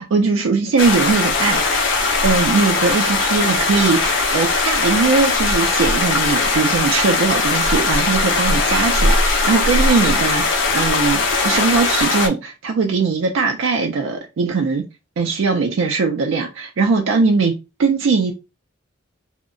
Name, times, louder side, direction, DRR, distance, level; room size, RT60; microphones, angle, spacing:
voice 1, 0.0-1.6 2.2-14.8 15.2-17.5 17.8-18.3, right 4 dB, 75° right, 0.4 m, -20 dB
sound 1, 0.8-12.3, left 3 dB, 70° left, 0.5 m, -19 dB
2.7 x 2.1 x 2.5 m
head